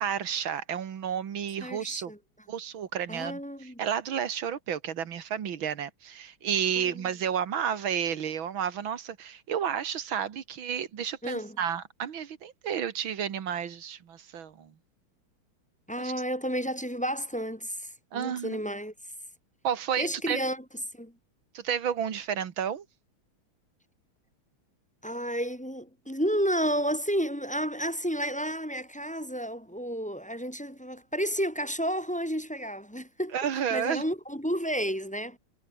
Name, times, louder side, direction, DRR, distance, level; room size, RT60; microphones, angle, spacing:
voice 1, 0.0-2.1 2.5-3.4 3.8-14.7 16.0-16.1 18.1-18.6 19.6-20.4 21.5-22.8 33.3-34.0, right 8 dB, 75° right, 2.3 m, -31 dB
voice 2, 1.6-2.2 3.1-3.8 6.8-7.0 11.2-11.6 15.9-18.9 20.0-20.6 20.9-21.1 25.0-33.4 33.7-35.4, equal, 5° left, 1.4 m, -31 dB
omnidirectional pair, 2.2 m